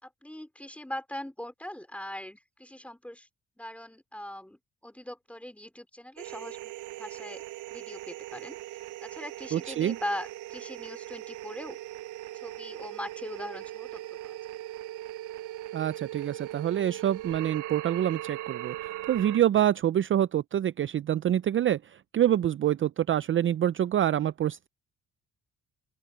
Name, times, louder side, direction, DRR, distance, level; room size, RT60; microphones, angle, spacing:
voice 1, 0.0-3.3 3.6-6.7 7.0-7.4 7.7-11.8 12.3-14.4, left 1 dB, 5° left, 3.9 m, -41 dB
sound 1, 6.2-19.4, right 15 dB, 85° right, 0.6 m, -40 dB
voice 2, 9.5-10.0 15.7-24.7, right 11 dB, 40° right, 0.5 m, -26 dB
open air
cardioid pair, 90°, 30 cm